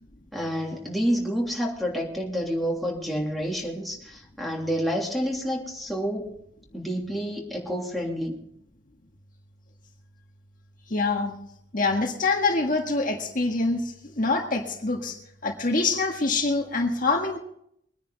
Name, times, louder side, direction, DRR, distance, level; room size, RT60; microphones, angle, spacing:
voice 1, 0.3-6.3 6.7-8.4, equal, ahead, -3 dB, 3.1 m, -29 dB
voice 2, 10.9-11.3 11.7-15.2 15.4-17.4, left 3 dB, 45° left, 2 dB, 1.7 m, -25 dB
23.5 x 10.0 x 4.1 m, 0.72 s
head